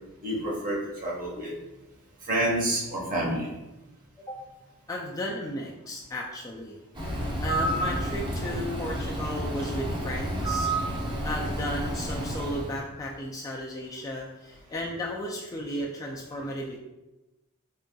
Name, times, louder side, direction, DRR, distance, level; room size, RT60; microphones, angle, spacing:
voice 1, 0.2-1.5 2.3-3.5, right 1 dB, 40° right, -4 dB, 1.2 m, -28 dB
voice 2, 4.9-6.8 7.4-10.7 11.2-16.8, equal, 15° left, -3 dB, 0.3 m, -34 dB
Bird, 6.9-12.8, right 1 dB, 20° right, 0.7 m, -30 dB
3.8 x 3.6 x 2.3 m, 1.0 s
head